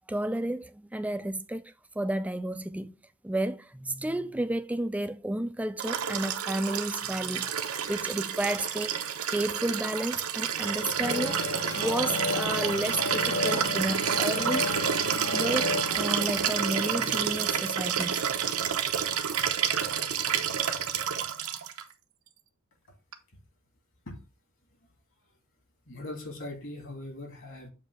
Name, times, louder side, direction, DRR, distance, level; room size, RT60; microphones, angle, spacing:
voice 1, 0.0-1.6 2.0-2.9 3.2-11.4 11.8-14.7 15.3-18.2, right 1 dB, 5° right, 0.3 m, -32 dB
Liquid, 5.8-21.8 23.1-23.2, right 8 dB, 75° right, 0.8 m, -29 dB
sound 1, 11.0-18.3, left 3 dB, 25° left, 0.7 m, -34 dB
voice 2, 25.9-27.7, left 1 dB, 60° left, 2.2 m, -40 dB
7.3 x 2.7 x 5.5 m
head